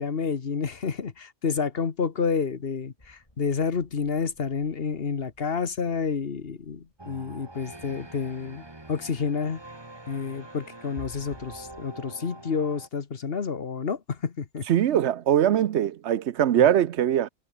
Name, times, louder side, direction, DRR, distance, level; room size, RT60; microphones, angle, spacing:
voice 1, 0.0-8.6 8.9-9.6 10.1-14.6 16.6-16.7, left 5 dB, 55° left, 1.5 m, -29 dB
sound 1, 3.0-8.5 11.0-11.8, left 1 dB, 25° left, 5.1 m, -52 dB
sound 2, 7.0-12.9, right 2 dB, 20° right, 2.0 m, -45 dB
voice 2, 14.7-17.3, right 10 dB, 75° right, 1.0 m, -22 dB
omnidirectional pair, 1.2 m